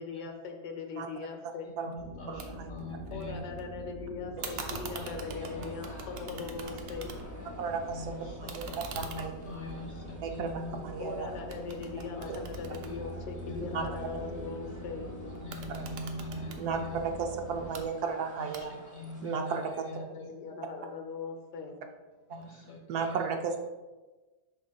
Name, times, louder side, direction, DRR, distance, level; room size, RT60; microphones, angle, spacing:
voice 1, 0.0-1.7 3.1-7.1 11.0-15.1 20.0-21.8, left 5 dB, 75° left, 4 dB, 1.3 m, -40 dB
voice 2, 1.7-3.4 4.4-5.7 6.3-6.4 7.9-10.9 12.1-12.3 12.9-13.0 13.5-13.9 15.2-17.1 18.4-20.5 22.3-23.3, left 2 dB, 45° left, 1 dB, 1.0 m, -43 dB
sound 1, 2.0-17.9, right 1 dB, 40° right, 0.7 m, -43 dB
voice 3, 2.3-2.7 7.6-8.7 8.9-9.3 10.2-10.5 10.8-11.3 13.7-13.8 15.7-16.0 16.5-18.7 19.2-19.8 22.3-22.4 22.9-23.6, right 5 dB, 70° right, 4 dB, 1.0 m, -34 dB
sound 2, 2.4-2.5 2.8-3.6 4.4-7.5 7.8-11.1 11.5-13.7 15.4-16.6 17.5-17.8 18.5-19.0, right 6 dB, 90° right, 1.4 m, -44 dB
sound 3, 4.9-19.4, left 1 dB, 15° left, 0.7 m, -52 dB
7.2 x 5.9 x 2.2 m, 1.2 s
omnidirectional pair, 1.9 m